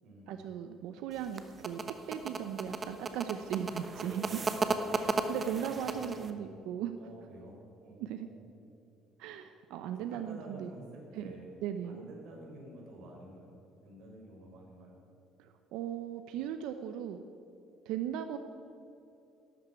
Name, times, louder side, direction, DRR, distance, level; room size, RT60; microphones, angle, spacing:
voice 1, 0.3-4.4 5.0-6.9 8.0-8.3 9.2-10.7 11.1-11.3 11.6-12.0 15.4-17.2 17.9-18.4, right 9 dB, 80° right, 8 dB, 0.7 m, -38 dB
sound 1, 1.1-6.3, right 3 dB, 20° right, 0.8 m, -34 dB
voice 2, 4.0-5.0 5.7-6.2 7.0-8.4 9.8-11.5 11.8-15.0, right 1 dB, 60° right, 0 dB, 4.2 m, -50 dB
12.5 x 9.0 x 9.5 m, 2.8 s
cardioid pair, 160°, 0 cm